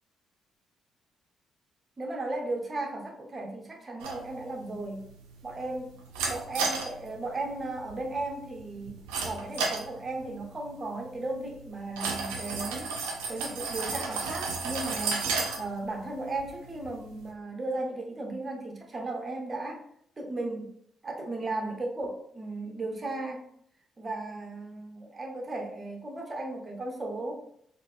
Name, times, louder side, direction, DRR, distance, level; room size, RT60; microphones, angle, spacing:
voice 1, 2.0-5.1 5.4-5.9 6.3-9.0 9.2-12.9 13.3-19.8 20.2-20.7 21.0-23.5 24.0-27.3, right 2 dB, 35° right, 2 dB, 0.8 m, -35 dB
sound 1, 4.0-17.3, right 4 dB, 75° right, 0.5 m, -35 dB
3.9 x 2.1 x 3.2 m, 0.68 s
figure-of-eight pair, 40°, 0 cm